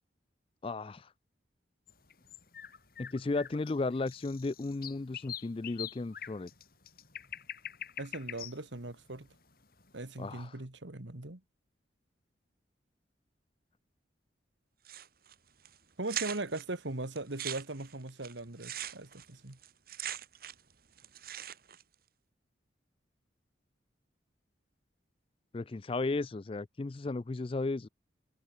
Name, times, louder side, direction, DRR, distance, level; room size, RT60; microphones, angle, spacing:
voice 1, 0.6-1.1 3.0-6.5 10.2-10.6 25.5-27.9, left 3 dB, 30° left, 0.4 m, -34 dB
sound 1, 1.9-10.1, left 10 dB, 50° left, 3.5 m, -45 dB
voice 2, 8.0-9.3 9.9-11.4 16.0-19.6, right 2 dB, 80° right, 2.0 m, -39 dB
sound 2, 14.9-15.3 15.7-15.8 16.1-16.6 17.2-20.7 21.0-21.8, right 11 dB, 50° right, 2.4 m, -40 dB
head